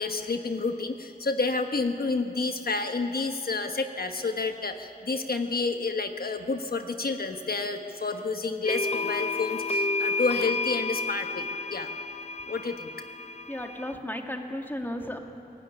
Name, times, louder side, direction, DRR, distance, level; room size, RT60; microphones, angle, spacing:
voice 1, 0.0-11.9 12.5-12.9, left 3 dB, 70° left, 6 dB, 1.2 m, -30 dB
sound 1, 8.7-13.9, left 3 dB, 40° left, 0.7 m, -31 dB
voice 2, 13.5-15.2, left 1 dB, 10° left, 3 dB, 2.1 m, -34 dB
23.0 x 18.0 x 9.9 m, 2.9 s
wide cardioid pair, 80°, 16 cm